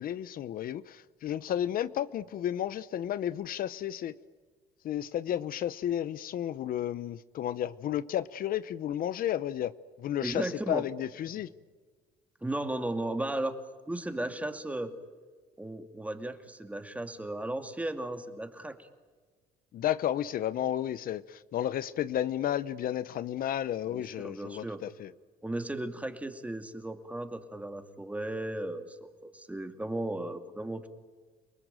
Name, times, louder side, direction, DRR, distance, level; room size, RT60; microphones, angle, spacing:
voice 1, 0.0-4.2 4.8-9.7 10.0-11.5 19.7-25.1, left 11 dB, 60° left, 0.8 m, -32 dB
voice 2, 10.2-10.8 12.4-13.6 13.9-14.9 15.6-18.9 23.9-24.8 25.4-30.9, right 1 dB, 10° right, 2.5 m, -35 dB
29.5 x 20.0 x 9.1 m
cardioid pair, 110°, 17 cm